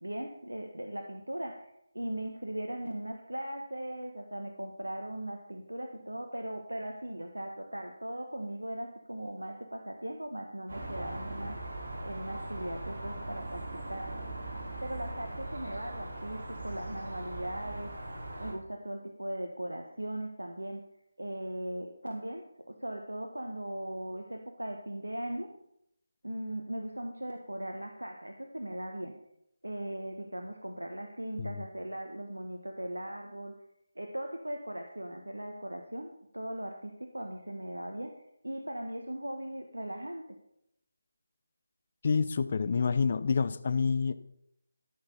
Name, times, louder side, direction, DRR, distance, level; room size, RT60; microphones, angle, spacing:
voice 1, 0.0-11.6 12.0-14.2 14.8-17.9 18.4-20.8 21.2-25.5 26.2-29.2 29.6-33.5 34.0-38.1 38.4-40.2, right 1 dB, 85° right, 4 dB, 1.3 m, -39 dB
sound 1, 10.7-18.5, right 1 dB, 60° right, 3.8 m, -40 dB
voice 2, 42.0-44.1, left 5 dB, 40° left, 13 dB, 0.6 m, -28 dB
13.5 x 6.7 x 5.5 m, 0.78 s
figure-of-eight pair, 160°, 0 cm